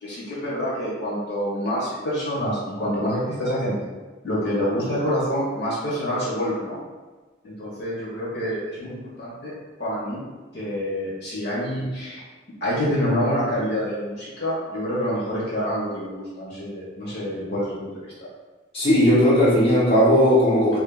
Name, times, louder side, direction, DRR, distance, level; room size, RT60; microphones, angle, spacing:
voice 1, 0.0-3.8 4.2-6.8 7.4-9.5 9.8-10.2 10.5-12.2 12.6-18.1, equal, 60° left, -7 dB, 1.3 m, -27 dB
voice 2, 18.7-20.8, equal, 30° left, -7 dB, 0.8 m, -17 dB
3.5 x 3.1 x 2.4 m, 1.3 s
head